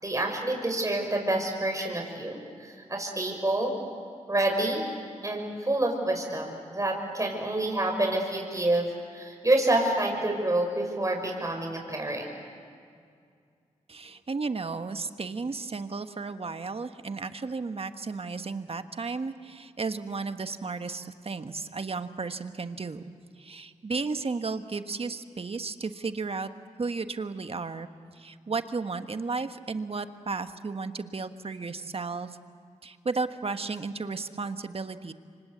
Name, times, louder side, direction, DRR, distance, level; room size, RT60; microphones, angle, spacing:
voice 1, 0.0-3.7 4.3-4.8 5.2-8.9 9.1-12.3, right 1 dB, 25° right, 2 dB, 6.3 m, -28 dB
voice 2, 13.9-26.5 26.8-27.9 28.1-32.4 32.8-35.1, right 4 dB, 50° right, 9 dB, 1.4 m, -34 dB
27.0 x 25.0 x 8.2 m, 2.2 s
cardioid pair, 45°, 13 cm